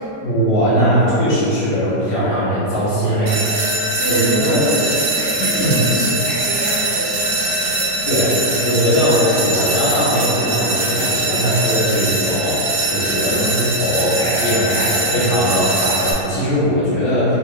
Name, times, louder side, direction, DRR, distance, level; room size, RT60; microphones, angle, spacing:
voice 1, 0.2-3.3 4.1-4.7 5.4-5.8 8.1-8.4 8.6-17.4, equal, 85° left, -10 dB, 1.5 m, -19 dB
sound 1, 3.3-16.1, right 2 dB, 85° right, 1.4 m, -21 dB
voice 2, 4.0-7.9 13.3-13.5, equal, 70° right, -10 dB, 1.2 m, -26 dB
3.4 x 2.5 x 3.1 m, 2.8 s
omnidirectional pair, 1.9 m